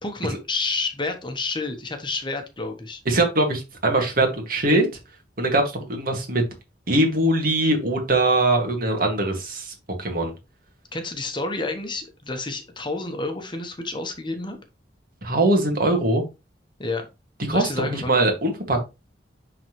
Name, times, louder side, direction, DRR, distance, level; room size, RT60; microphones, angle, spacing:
voice 1, 0.0-3.0 10.9-14.6 16.8-17.0 17.5-18.1, left 3 dB, 25° left, 6 dB, 1.1 m, -29 dB
voice 2, 3.1-4.9 5.4-6.4 6.9-10.3 15.2-16.2 17.5-18.8, right 2 dB, 55° right, 3 dB, 2.1 m, -22 dB
10.5 x 3.9 x 3.1 m, 0.26 s
head